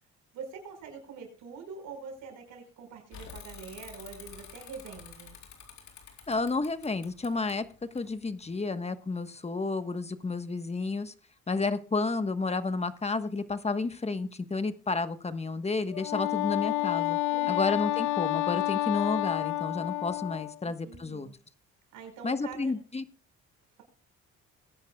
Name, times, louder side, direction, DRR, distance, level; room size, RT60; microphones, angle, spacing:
voice 1, 0.3-5.4 17.3-17.7 20.6-21.3 21.9-22.7, right 5 dB, 90° right, 3 dB, 5.3 m, -44 dB
Bicycle / Mechanisms, 3.1-8.6, left 7 dB, 70° left, 4.2 m, -49 dB
voice 2, 6.3-7.7 7.9-11.1 11.5-17.2 17.5-21.3 22.2-23.0, left 3 dB, 20° left, 10 dB, 1.2 m, -31 dB
Wind instrument woodwind instrument, 15.9-20.6, left 20 dB, 90° left, 0.5 m, -29 dB
21.5 x 10.5 x 2.3 m, 0.38 s
cardioid pair, 90°, 30 cm